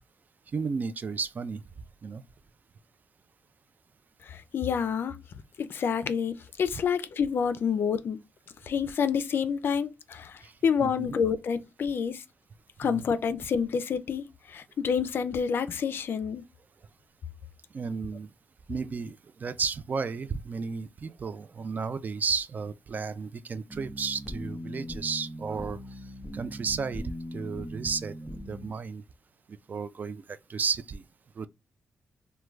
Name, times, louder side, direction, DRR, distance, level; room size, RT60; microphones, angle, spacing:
voice 1, 0.5-1.6 2.0-2.2 10.4-10.5 10.8-11.1 12.8-13.0 17.7-18.3 18.7-26.0 26.3-28.1 28.5-29.0 29.5-31.0 31.4-31.5, right 5 dB, 45° right, 0.3 m, -33 dB
voice 2, 4.3-5.2 5.6-8.2 8.7-12.2 12.8-14.2 14.5-16.4, left 6 dB, 60° left, 0.3 m, -28 dB
sound 1, 23.7-28.7, equal, 5° left, 0.6 m, -40 dB
2.3 x 2.1 x 3.1 m
cardioid pair, 70°, 4 cm